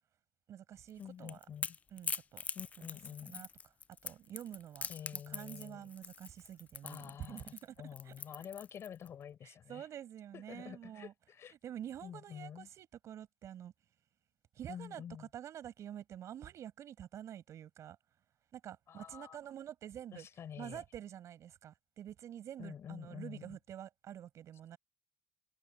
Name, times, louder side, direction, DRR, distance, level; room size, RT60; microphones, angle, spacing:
voice 1, 0.5-1.4 1.9-2.4 2.8-2.9 3.2-3.5 4.0-7.8 8.0-8.5 9.4-11.1 11.5-13.7 14.5-18.0 18.5-20.3 20.6-24.8, right 10 dB, 45° right, 5.5 m, -48 dB
Crackle / Crack, 0.9-9.1, left 5 dB, 20° left, 0.3 m, -43 dB
voice 2, 1.0-1.8 2.5-3.4 4.9-5.9 6.8-9.9 10.3-11.5 12.0-12.7 14.7-15.3 18.9-19.4 20.1-20.8 22.6-23.6, left 8 dB, 40° left, 5.6 m, -48 dB
cardioid pair, 120°, 7 cm